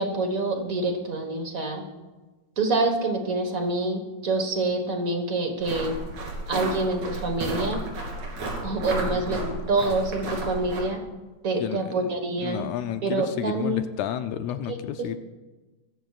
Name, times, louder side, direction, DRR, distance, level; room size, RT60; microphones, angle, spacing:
voice 1, 0.0-1.8 2.6-5.9 6.5-7.8 8.6-11.0 11.4-12.7 13.0-13.8 14.7-15.2, right 2 dB, 45° right, 4 dB, 1.2 m, -26 dB
sound 1, 5.6-10.8, right 2 dB, 75° right, 4.5 m, -32 dB
voice 2, 9.1-9.5 11.6-11.8 12.4-15.2, left 10 dB, 80° left, 9 dB, 1.9 m, -31 dB
22.0 x 14.5 x 2.4 m, 1.2 s
omnidirectional pair, 3.4 m